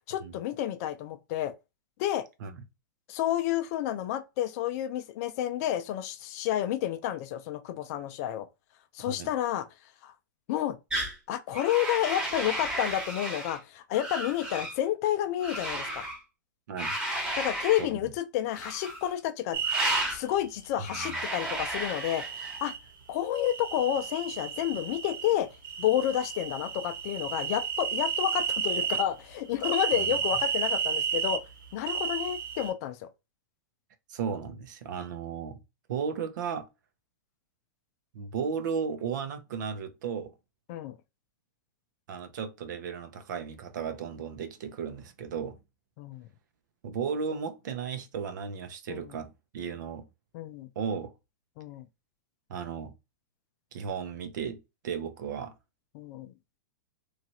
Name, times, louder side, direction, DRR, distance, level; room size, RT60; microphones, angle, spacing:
voice 1, 0.1-1.5 2.0-2.2 3.1-8.5 8.9-9.7 10.0-10.1 10.5-10.8 11.3-16.0 17.4-19.6 20.1-22.7 23.1-25.5 25.8-31.4 31.7-33.1 40.7-40.9 46.0-46.3 48.9-49.1 50.3-50.7 51.6-51.8 55.9-56.3, left 12 dB, 45° left, 0.5 m, -30 dB
sound 1, 10.9-11.2 11.5-13.6 13.9-14.8 15.4-16.2 16.8-17.9 18.5-19.1 19.6-20.2 20.8-22.6, right 1 dB, 5° right, 1.1 m, -33 dB
voice 2, 17.8-18.1 21.0-21.2 30.0-30.2 34.1-35.6 35.9-36.7 38.1-40.3 42.1-45.6 46.8-50.0 50.8-51.1 52.5-52.9 53.7-54.6 54.8-55.5, right 6 dB, 65° right, 0.7 m, -35 dB
sound 2, 19.5-20.0 21.2-22.8 23.3-25.3 25.6-29.1 29.6-31.4 31.8-32.7, right 7 dB, 80° right, 1.2 m, -32 dB
3.0 x 2.4 x 2.8 m
hypercardioid pair, 115°, 11 cm